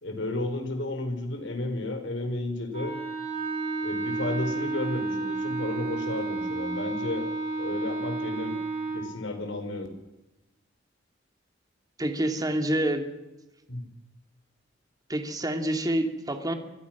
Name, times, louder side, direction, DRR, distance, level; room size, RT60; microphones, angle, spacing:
voice 1, 0.0-3.0 3.8-7.3 7.6-8.6 8.9-9.9 13.7-13.8, left 2 dB, 70° left, 6 dB, 4.7 m, -32 dB
Wind instrument woodwind instrument, 2.7-9.1, right 3 dB, 40° right, 7.2 m, -31 dB
voice 2, 12.0-13.0 15.1-16.5, right 1 dB, 20° right, 5 dB, 2.4 m, -27 dB
27.0 x 21.0 x 6.1 m, 1.0 s
head